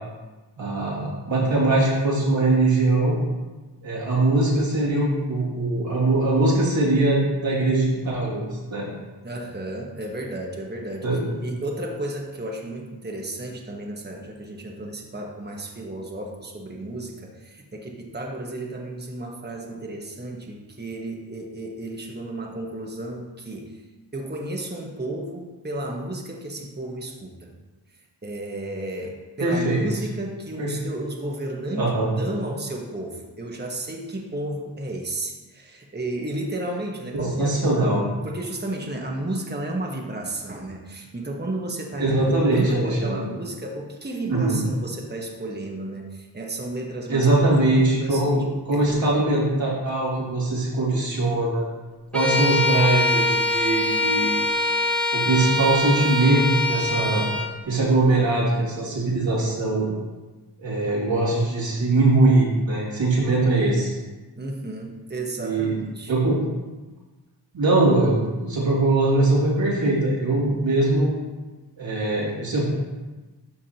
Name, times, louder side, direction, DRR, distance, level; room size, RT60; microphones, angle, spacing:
voice 1, 0.6-3.2 3.8-8.9 11.0-11.4 29.4-29.8 30.6-30.7 31.8-32.1 37.1-38.1 42.0-43.2 44.3-44.6 47.1-51.7 52.1-54.4 55.1-57.3 57.7-59.9 60.6-63.9 65.4-65.7 66.1-66.4 67.5-71.1 71.8-72.7, right 2 dB, 85° right, -6 dB, 2.6 m, -21 dB
voice 2, 9.2-11.1 11.4-23.8 24.1-27.5 28.2-37.5 38.2-42.1 42.4-47.3 47.7-49.0 64.3-66.1, right 1 dB, 20° right, 0 dB, 1.3 m, -33 dB
Bowed string instrument, 52.1-57.5, left 1 dB, ahead, 1.4 m, -23 dB
12.5 x 4.7 x 3.0 m, 1.2 s
cardioid pair, 40°, 44 cm